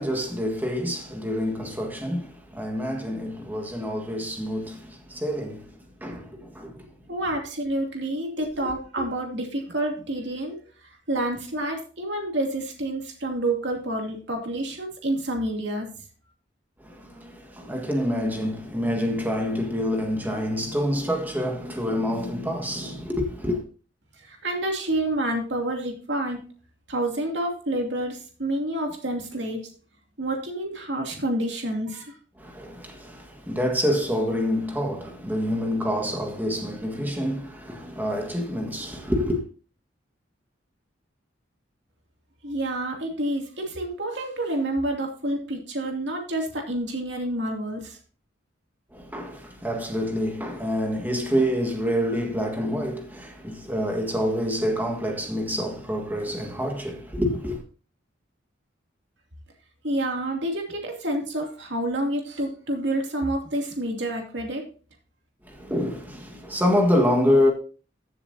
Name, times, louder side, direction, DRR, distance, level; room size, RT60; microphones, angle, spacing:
voice 1, 0.0-6.9 8.6-8.7 9.0-9.1 16.8-23.6 32.4-39.4 48.9-57.6 65.4-67.5, equal, 10° right, 1.5 m, -27 dB
voice 2, 7.1-15.9 24.2-26.4 26.9-29.6 30.2-32.1 42.4-48.0 59.8-64.6, right 1 dB, 65° right, 2.5 m, -28 dB
14.5 x 7.1 x 2.7 m
head